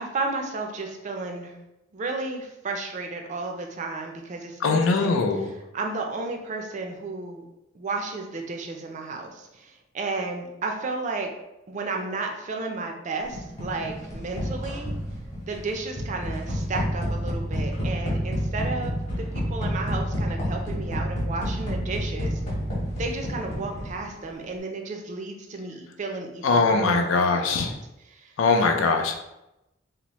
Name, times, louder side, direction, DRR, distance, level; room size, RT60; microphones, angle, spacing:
voice 1, 0.0-1.6 1.9-5.1 5.7-7.4 7.7-11.3 11.7-14.9 15.5-22.4 23.0-27.1 27.3-27.8 28.1-28.3 28.6-28.9, right 3 dB, 40° right, 3 dB, 0.4 m, -33 dB
voice 2, 4.6-5.5 26.4-27.7 28.4-29.2, left 4 dB, 90° left, 5 dB, 0.4 m, -21 dB
sound 1, 13.3-24.2, equal, 40° left, 1.0 m, -29 dB
2.8 x 2.0 x 3.0 m, 0.91 s
head